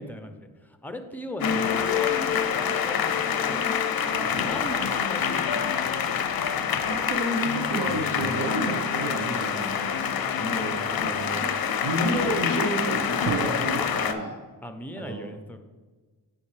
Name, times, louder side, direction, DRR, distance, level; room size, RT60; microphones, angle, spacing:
voice 1, 0.0-3.6 4.3-6.2 14.6-15.6, equal, 5° left, 7 dB, 0.7 m, -39 dB
sound 1, 1.4-14.1, left 7 dB, 50° left, 0.6 m, -26 dB
sound 2, 4.1-6.2 13.2-13.9, right 4 dB, 30° right, 0.6 m, -36 dB
voice 2, 6.9-9.8 10.4-11.5 11.8-14.3 15.0-15.3, right 1 dB, 70° right, -2 dB, 1.0 m, -30 dB
8.4 x 5.2 x 3.3 m, 1.3 s
cardioid pair, 55°, 45 cm